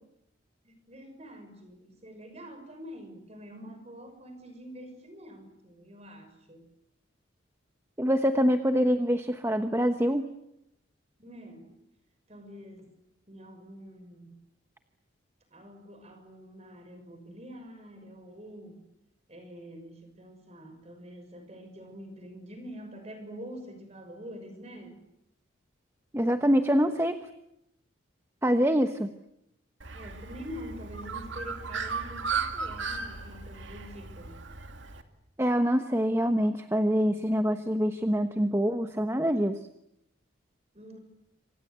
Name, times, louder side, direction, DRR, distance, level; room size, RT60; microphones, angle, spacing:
voice 1, 0.6-6.7 11.2-11.8 12.3-12.9 13.3-14.4 15.5-18.8 19.3-25.0 29.9-34.4 40.7-41.0, equal, 30° right, 7 dB, 6.1 m, -46 dB
voice 2, 8.0-10.3 26.1-27.2 28.4-29.1 35.4-39.6, equal, 15° right, 7 dB, 1.1 m, -25 dB
Bird, 29.8-35.0, right 5 dB, 65° right, 2.5 m, -36 dB
27.5 x 26.0 x 8.1 m, 0.80 s
head